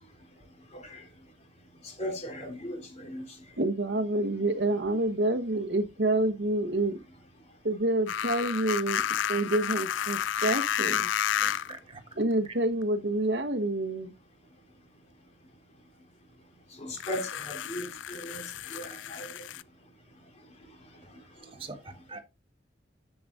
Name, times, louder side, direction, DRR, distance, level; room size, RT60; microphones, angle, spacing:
voice 1, 0.7-1.0 1.8-3.3 16.8-19.4, equal, 35° left, 3.4 m, -38 dB
voice 2, 3.6-7.0 7.6-9.0 9.3-11.1 12.1-14.1, right 2 dB, 65° right, 1.3 m, -28 dB
sound 1, 8.1-11.8 12.8-12.9 16.9-19.6, left 9 dB, 90° left, 0.4 m, -31 dB
voice 3, 11.4-12.0 21.5-22.2, right 3 dB, 30° right, 1.5 m, -44 dB
10.5 x 7.8 x 2.6 m
head